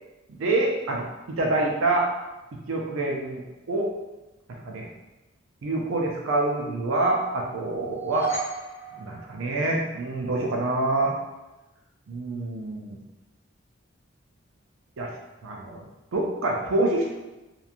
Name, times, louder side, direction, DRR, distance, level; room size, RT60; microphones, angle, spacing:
voice 1, 0.4-2.1 2.5-3.4 3.7-3.9 4.6-4.9 5.6-8.3 9.0-11.1 12.1-13.0 15.0-15.1 15.4-17.1, right 2 dB, 85° right, 0 dB, 0.4 m, -26 dB
sound 1, 7.8-10.0, right 5 dB, 65° left, 0.7 m, -35 dB
2.9 x 2.3 x 2.4 m, 1.0 s
head